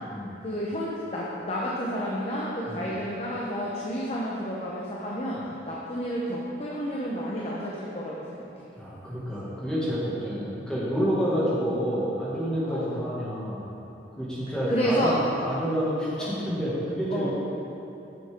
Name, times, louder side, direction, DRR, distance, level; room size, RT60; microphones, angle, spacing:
voice 1, 0.4-8.5 11.3-11.5 12.6-12.9 14.7-15.2 16.2-16.3 17.1-17.3, equal, 35° left, -5 dB, 0.8 m, -30 dB
voice 2, 8.8-13.6 14.2-17.3, equal, 5° left, -9 dB, 2.0 m, -29 dB
9.6 x 6.8 x 3.7 m, 2.9 s
head